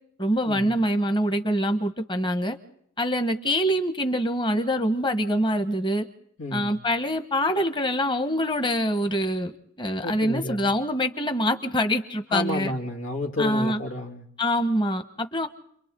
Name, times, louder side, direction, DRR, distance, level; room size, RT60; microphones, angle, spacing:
voice 1, 0.2-2.6 3.0-6.1 6.5-9.5 9.8-12.7 13.4-13.8 14.4-15.5, equal, 25° left, 8 dB, 1.3 m, -25 dB
voice 2, 6.4-6.7 10.0-10.7 12.3-14.3, left 1 dB, 90° left, 0 dB, 2.8 m, -30 dB
30.0 x 24.0 x 3.9 m, 0.69 s
head